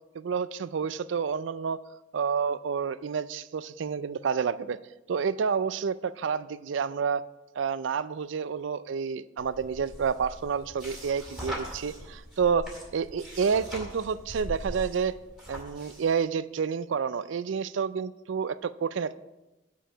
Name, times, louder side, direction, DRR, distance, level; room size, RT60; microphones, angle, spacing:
voice 1, 0.1-1.8 2.1-4.8 5.1-7.2 7.6-12.7 12.9-15.2 15.5-19.2, right 6 dB, 75° right, 16 dB, 0.4 m, -29 dB
sound 1, 9.4-16.2, equal, ahead, 2.3 m, -41 dB
9.1 x 4.7 x 7.4 m, 1.0 s
head